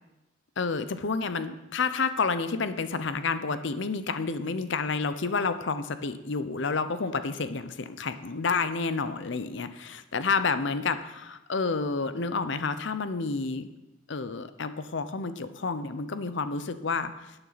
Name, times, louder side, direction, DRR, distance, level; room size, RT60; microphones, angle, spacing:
voice 1, 0.6-11.0 11.5-13.7 14.1-17.3, left 4 dB, 60° left, 11 dB, 0.6 m, -29 dB
12.5 x 9.0 x 4.0 m, 0.98 s
head